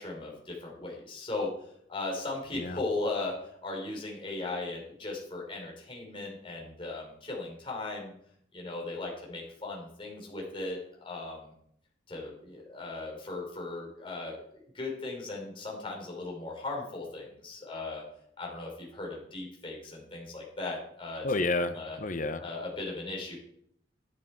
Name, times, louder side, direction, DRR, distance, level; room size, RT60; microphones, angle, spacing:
voice 1, 0.0-1.5 1.9-3.4 3.6-8.1 8.5-10.8 11.0-11.5 12.1-14.4 14.7-18.0 18.4-21.3 21.6-22.0 22.4-23.4, left 2 dB, 30° left, -1 dB, 3.9 m, -37 dB
voice 2, 21.2-22.4, left 2 dB, 45° left, 11 dB, 0.8 m, -30 dB
11.0 x 10.5 x 4.6 m, 0.69 s
head